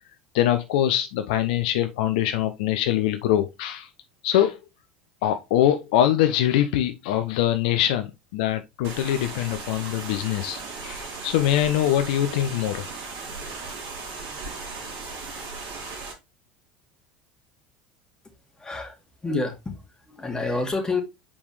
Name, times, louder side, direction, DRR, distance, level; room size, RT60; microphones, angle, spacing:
voice 1, 0.3-3.9 4.2-4.6 5.2-12.9, left 11 dB, 65° left, 0.7 m, -23 dB
sound 1, 8.8-16.1, right 4 dB, 60° right, 3.5 m, -37 dB
voice 2, 18.6-19.0 19.2-21.0, left 3 dB, 15° left, 2.3 m, -28 dB
7.0 x 5.1 x 3.1 m
hypercardioid pair, 75°, 5 cm